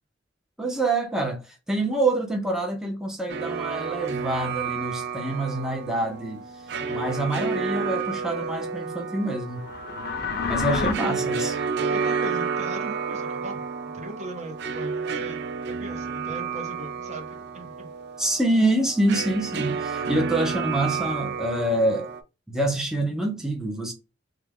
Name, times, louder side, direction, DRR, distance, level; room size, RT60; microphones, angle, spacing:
voice 1, 0.6-1.4 1.7-6.4 6.9-9.6 10.5-11.6 18.2-22.1 22.5-23.9, right 1 dB, 5° right, 0.6 m, -26 dB
sound 1, 3.3-22.2, right 5 dB, 60° right, 0.4 m, -31 dB
voice 2, 6.7-7.1 10.7-10.9 11.9-15.4 15.7-17.9, right 1 dB, 35° right, 0.9 m, -39 dB
sound 2, 9.5-10.9, left 4 dB, 55° left, 0.6 m, -28 dB
3.3 x 2.2 x 3.5 m
head